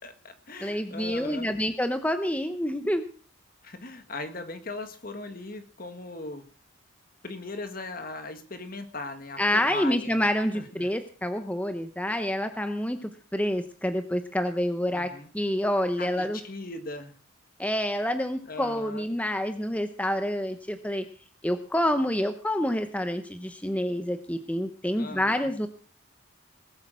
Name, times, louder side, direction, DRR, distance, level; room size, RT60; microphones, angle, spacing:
voice 1, 0.0-1.6 3.6-6.5 7.2-10.2 10.5-10.9 14.9-15.3 16.0-17.2 18.5-19.2 24.9-25.5, left 2 dB, 45° left, 8 dB, 1.7 m, -39 dB
voice 2, 0.6-3.0 9.4-16.4 17.6-21.0 21.4-25.7, left 1 dB, 5° left, 8 dB, 0.9 m, -28 dB
19.5 x 8.6 x 6.2 m, 0.41 s
head